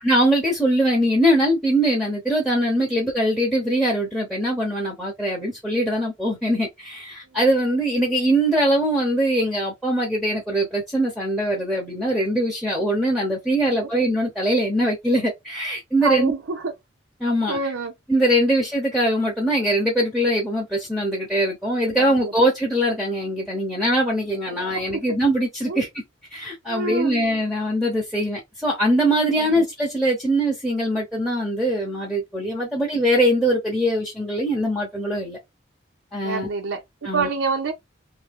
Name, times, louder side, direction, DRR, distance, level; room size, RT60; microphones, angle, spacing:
voice 1, 0.0-16.3 17.2-17.6 18.1-25.9 26.3-35.4 36.1-36.5 37.0-37.3, right 1 dB, ahead, 0.7 m, -22 dB
voice 2, 16.0-16.7 17.5-17.9 21.9-22.3 24.5-25.0 25.7-25.8 26.7-27.3 29.4-29.6 32.7-32.8 36.2-37.7, right 3 dB, 70° right, 0.6 m, -27 dB
2.7 x 2.7 x 3.5 m
head